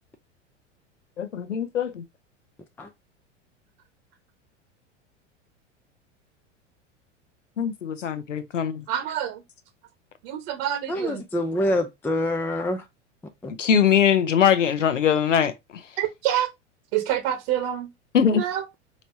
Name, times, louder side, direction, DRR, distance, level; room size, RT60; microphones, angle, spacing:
voice 1, 1.2-2.0 7.6-8.8 13.6-15.8 18.1-18.4, left 8 dB, 80° left, 0.8 m, -22 dB
voice 2, 8.9-9.4 10.2-11.2 16.0-16.5 16.9-17.9 18.3-18.6, right 11 dB, 50° right, 1.2 m, -27 dB
voice 3, 10.9-12.9 13.4-13.5, left 1 dB, 5° left, 0.5 m, -26 dB
5.2 x 3.1 x 2.7 m
figure-of-eight pair, 90°, 37 cm